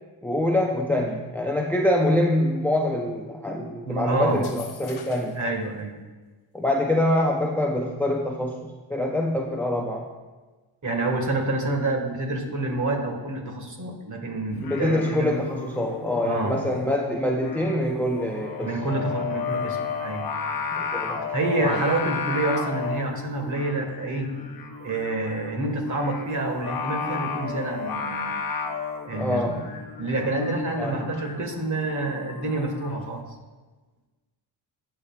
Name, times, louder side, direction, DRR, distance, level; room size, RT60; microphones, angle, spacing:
voice 1, 0.2-5.4 6.5-10.1 14.6-18.7 20.7-21.3 21.6-21.8 29.2-29.6 30.8-31.1, left 1 dB, 5° left, 1 dB, 0.6 m, -25 dB
voice 2, 3.8-4.5 5.4-6.0 10.8-15.3 16.2-16.6 18.6-20.3 21.3-24.3 24.8-28.3 29.0-29.6 30.0-33.2, right 2 dB, 35° right, 3 dB, 1.7 m, -27 dB
sound 1, 4.3-5.5, left 6 dB, 80° left, 1.2 m, -44 dB
Singing, 14.5-33.0, left 6 dB, 45° left, 1.0 m, -33 dB
16.0 x 5.8 x 2.4 m, 1.3 s
cardioid pair, 85°, 49 cm